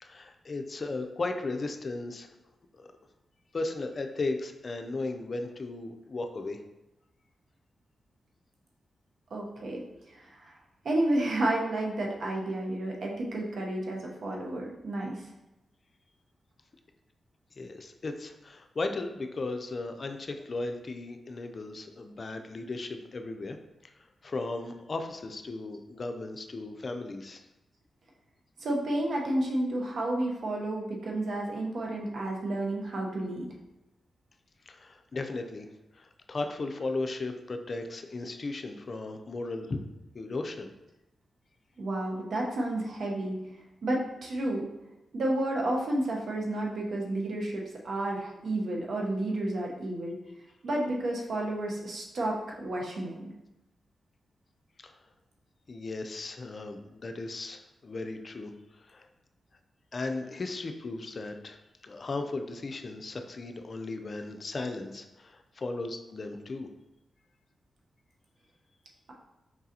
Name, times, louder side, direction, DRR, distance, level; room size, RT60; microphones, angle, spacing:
voice 1, 0.0-2.3 3.5-6.6 17.6-23.6 24.2-27.4 34.7-35.7 35.9-39.8 40.1-40.7 54.8-55.0 55.7-59.1 59.9-61.6 61.8-66.7, left 3 dB, 50° left, 6 dB, 0.4 m, -36 dB
voice 2, 9.3-9.8 10.1-10.5 10.8-15.2 28.6-33.5 41.8-43.4 43.8-44.7 45.1-50.2 50.6-53.3, right 1 dB, 70° right, -1 dB, 0.9 m, -31 dB
4.7 x 3.7 x 2.8 m, 0.95 s
cardioid pair, 70°, 0 cm